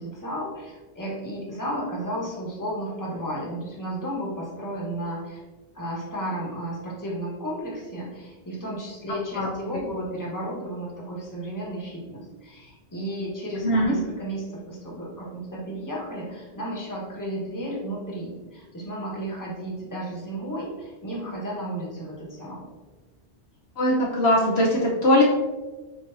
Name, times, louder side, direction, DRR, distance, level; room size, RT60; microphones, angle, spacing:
voice 1, 0.0-5.4 5.7-22.7, right 1 dB, 15° left, -5 dB, 1.2 m, -33 dB
voice 2, 13.6-13.9 23.8-25.3, left 1 dB, 65° left, -4 dB, 1.1 m, -20 dB
4.5 x 4.3 x 2.6 m, 1.2 s
omnidirectional pair, 1.2 m